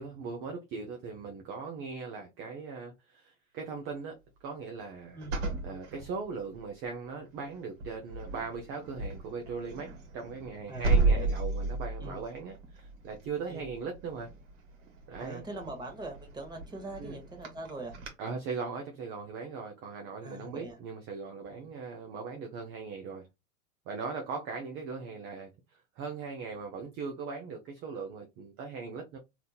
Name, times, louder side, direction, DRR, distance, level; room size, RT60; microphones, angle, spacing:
voice 1, 0.0-5.2 5.6-14.3 15.1-15.4 17.0-17.2 18.2-23.3 23.9-25.5 26.0-29.2, right 5 dB, 30° right, 0.6 m, -39 dB
sound 1, 5.2-6.7 7.3-7.5 7.8-18.1, right 3 dB, 60° right, 1.4 m, -34 dB
voice 2, 10.7-11.3 12.0-12.2 13.5-13.7 15.2-17.9 20.2-20.8 21.5-21.7, right 2 dB, 10° right, 1.1 m, -42 dB
3.5 x 2.9 x 2.3 m
hypercardioid pair, 115°, 41 cm